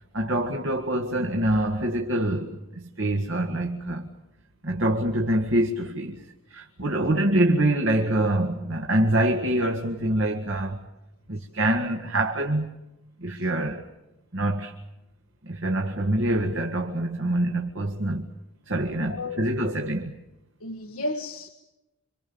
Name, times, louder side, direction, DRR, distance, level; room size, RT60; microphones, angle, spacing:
voice 1, 0.1-4.1 4.6-10.8 11.3-12.7 13.2-13.8 14.3-14.7 15.4-18.3 18.7-20.2, right 1 dB, 60° right, 2.0 m, -25 dB
voice 2, 19.1-19.5 20.6-21.5, left 2 dB, 75° left, 1.6 m, -33 dB
27.0 x 26.0 x 7.1 m
head